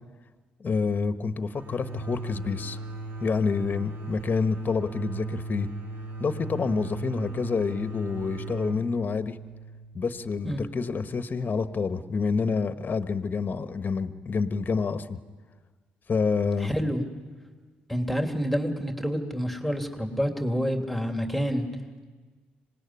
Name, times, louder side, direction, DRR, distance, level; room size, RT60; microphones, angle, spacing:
voice 1, 0.6-2.8 3.2-5.7 6.2-9.4 9.9-15.2 16.1-16.7, left 4 dB, 40° left, 10 dB, 1.3 m, -28 dB
sound 1, 1.5-11.0, right 2 dB, 50° right, 4.6 m, -38 dB
voice 2, 16.6-17.0 17.9-21.7, equal, ahead, 4 dB, 2.9 m, -28 dB
25.5 x 19.0 x 9.8 m, 1.4 s
hypercardioid pair, 55°, 5 cm